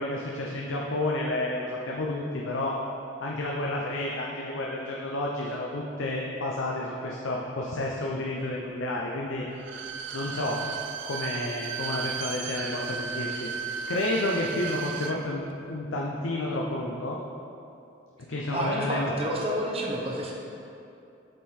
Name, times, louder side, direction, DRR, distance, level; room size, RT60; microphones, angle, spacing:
voice 1, 0.0-2.8 3.2-9.4 10.1-10.6 11.0-13.5 13.9-15.4 15.7-17.2 18.3-19.1, left 2 dB, 90° left, -2 dB, 0.6 m, -30 dB
Bowed string instrument, 9.5-15.2 15.5-15.6, right 7 dB, 65° right, 0.4 m, -34 dB
voice 2, 18.5-20.3, equal, 30° right, -2 dB, 0.7 m, -29 dB
8.0 x 3.7 x 4.4 m, 2.7 s
head